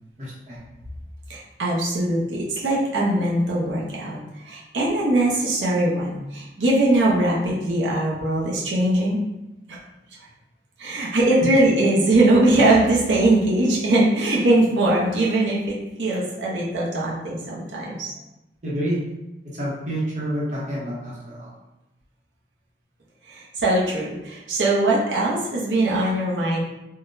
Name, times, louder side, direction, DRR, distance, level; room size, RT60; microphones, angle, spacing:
voice 1, 0.2-0.6 11.4-11.6 18.6-19.0 19.4-21.5, equal, 40° right, -6 dB, 0.8 m, -28 dB
voice 2, 1.3-4.2 4.5-9.2 9.7-9.8 10.8-18.1 23.3-26.6, right 1 dB, 85° right, -5 dB, 0.7 m, -21 dB
3.7 x 2.1 x 2.6 m, 0.96 s
head